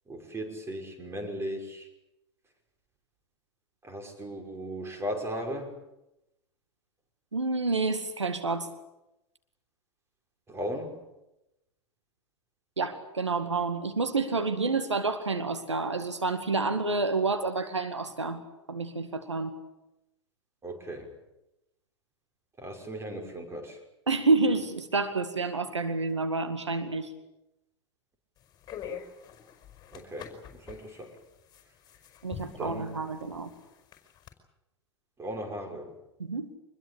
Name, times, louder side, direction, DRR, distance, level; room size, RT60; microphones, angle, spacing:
voice 1, 0.1-1.9 3.8-5.8 10.5-11.0 20.6-21.2 22.6-23.8 29.9-31.2 32.6-32.8 35.2-35.9, equal, 15° right, 4 dB, 5.9 m, -37 dB
voice 2, 7.3-8.7 12.8-18.4 18.7-19.5 24.1-27.1 32.2-33.5 36.2-36.5, right 3 dB, 85° right, 8 dB, 1.9 m, -29 dB
sound 1, 28.4-34.3, left 8 dB, 30° left, 5.3 m, -46 dB
25.0 x 21.0 x 8.6 m, 0.91 s
figure-of-eight pair, 90°, 15 cm